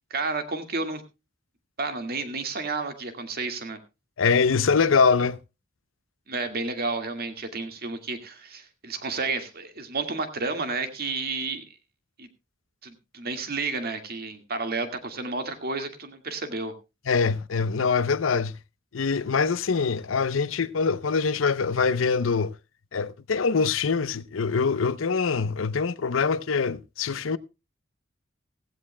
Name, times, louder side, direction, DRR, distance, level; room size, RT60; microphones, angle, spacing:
voice 1, 0.1-1.0 1.8-3.8 6.3-11.6 12.2-12.3 12.8-16.7, right 3 dB, 50° right, 1.9 m, -31 dB
voice 2, 4.2-5.4 17.1-18.6 18.9-22.5 22.9-27.4, left 5 dB, 90° left, 0.7 m, -24 dB
16.5 x 16.0 x 2.2 m
head